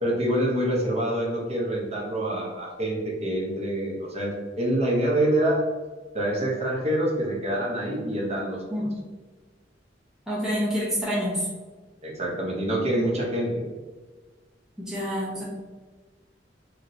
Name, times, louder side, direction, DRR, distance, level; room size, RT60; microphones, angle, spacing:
voice 1, 0.0-5.6 6.1-8.9 12.0-13.6, right 1 dB, 35° right, -2 dB, 0.8 m, -26 dB
voice 2, 10.3-11.5 14.8-15.4, equal, 5° right, -8 dB, 0.9 m, -27 dB
2.9 x 2.9 x 2.6 m, 1.3 s
head